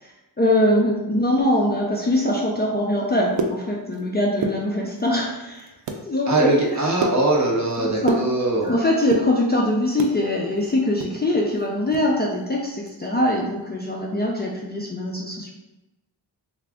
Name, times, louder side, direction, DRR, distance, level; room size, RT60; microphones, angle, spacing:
voice 1, 0.4-5.7 6.0-6.8 7.8-8.2 8.6-15.5, left 1 dB, 25° left, -3 dB, 0.4 m, -22 dB
sound 1, 3.1-4.1 4.3-5.1 5.5-6.1 6.4-8.7 9.0-10.2 10.6-12.1 12.4-12.5 12.8-13.1 13.4-13.7, right 3 dB, 75° right, 0.5 m, -29 dB
voice 2, 6.3-8.8, right 2 dB, 40° right, -2 dB, 0.9 m, -21 dB
3.4 x 2.4 x 3.5 m, 1.0 s
wide cardioid pair, 125°, 43 cm